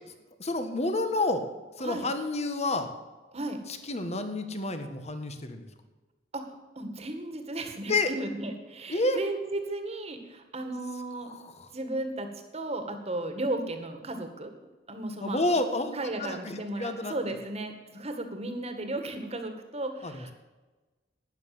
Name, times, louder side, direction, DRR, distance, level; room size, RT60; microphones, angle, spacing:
voice 1, 0.4-1.4 1.8-2.9 3.7-5.6 7.9-8.1 8.9-9.2 11.2-11.7 15.2-17.1 20.0-20.3, left 2 dB, 35° left, 8 dB, 1.6 m, -29 dB
voice 2, 6.3-11.3 11.7-14.5 14.9-15.4 15.9-20.3, right 2 dB, 35° right, 6 dB, 2.0 m, -35 dB
12.5 x 10.0 x 7.8 m, 1.2 s
head